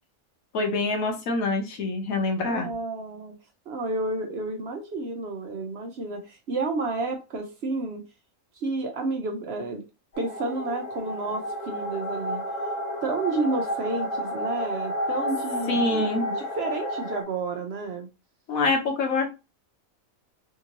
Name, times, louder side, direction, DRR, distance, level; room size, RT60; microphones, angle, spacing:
voice 1, 0.5-2.7 15.7-16.3 18.5-19.3, left 3 dB, 80° left, 3 dB, 1.3 m, -25 dB
voice 2, 2.5-3.3 3.7-8.0 8.6-9.8 10.2-12.4 13.0-18.1, right 3 dB, 55° right, 4 dB, 0.8 m, -31 dB
sound 1, 10.1-17.2, equal, 50° left, 1.3 m, -31 dB
3.6 x 2.7 x 2.9 m, 0.27 s
omnidirectional pair, 1.4 m